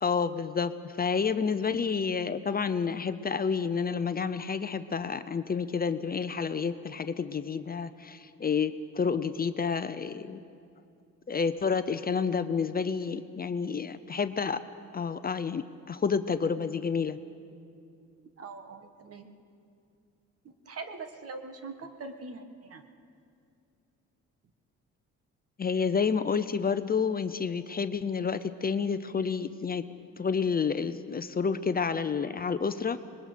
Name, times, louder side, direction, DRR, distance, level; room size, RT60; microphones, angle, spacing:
voice 1, 0.0-10.4 11.3-14.6 14.9-17.2 25.6-29.8 30.2-33.0, left 6 dB, 30° left, 11 dB, 0.7 m, -29 dB
voice 2, 18.4-19.3 20.4-22.8, right 3 dB, 50° right, 7 dB, 1.7 m, -43 dB
25.0 x 20.5 x 5.2 m, 2.4 s
cardioid pair, 90°, 30 cm